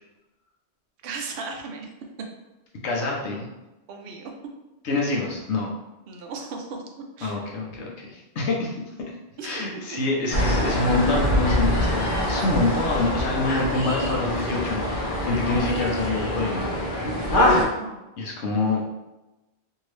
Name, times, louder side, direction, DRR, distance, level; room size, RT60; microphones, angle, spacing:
voice 1, 1.0-1.9 3.9-4.3 6.1-6.8 7.2-7.4 9.4-9.6 9.9-10.0 17.4-18.0, right 4 dB, 65° right, 2 dB, 0.7 m, -36 dB
voice 2, 2.8-3.5 4.8-5.7 7.2-8.8 9.4-16.7 18.2-18.9, left 3 dB, 80° left, -1 dB, 1.0 m, -26 dB
sound 1, 10.3-17.6, left 1 dB, 55° left, 0.8 m, -24 dB
2.7 x 2.7 x 3.1 m, 1.0 s
omnidirectional pair, 1.1 m